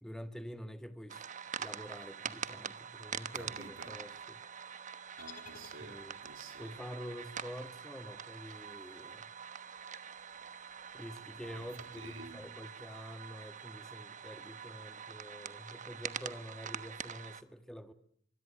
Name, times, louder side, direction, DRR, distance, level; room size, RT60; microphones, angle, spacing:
voice 1, 0.0-1.2 1.6-4.4 5.8-6.2 6.6-9.3 10.9-17.9, equal, 5° left, 1.7 m, -47 dB
sound 1, 1.1-17.4, right 7 dB, 40° right, 1.1 m, -45 dB
voice 2, 3.3-4.0 5.2-6.8 11.4-11.7 12.0-12.5, right 3 dB, 75° right, 3.7 m, -51 dB
sound 2, 5.2-6.5, left 6 dB, 45° left, 3.1 m, -55 dB
25.0 x 22.0 x 9.9 m
head